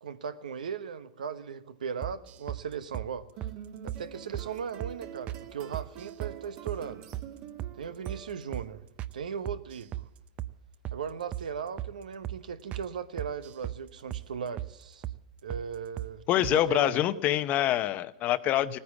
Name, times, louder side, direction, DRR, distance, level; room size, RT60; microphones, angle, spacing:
voice 1, 0.0-3.3 3.8-7.1 7.8-8.9 9.1-10.1 10.9-15.0 15.4-17.0, right 7 dB, 90° right, 1.0 m, -37 dB
sound 1, 2.0-2.6 2.9-3.1 3.4-3.6 3.9-4.0 4.3-4.5 4.8-5.0 5.3-5.4 5.7-6.4 6.7-6.8 7.1-7.3 7.6-7.8 8.1-8.2 8.5-8.7 9.0-9.2 9.5-10.1 10.4-10.5 10.8-11.0 11.3-11.5 11.8-11.9 12.2-12.4 12.7-12.9 13.2-13.8 14.1-14.3 14.6-14.7 15.0-15.2 15.5-15.7 16.0-16.1 16.4-16.6, right 13 dB, 35° right, 0.6 m, -36 dB
sound 2, 3.4-8.7, right 9 dB, 50° right, 2.1 m, -47 dB
voice 2, 16.3-18.8, left 13 dB, 40° left, 0.8 m, -25 dB
17.5 x 9.8 x 7.2 m
hypercardioid pair, 120°, 4 cm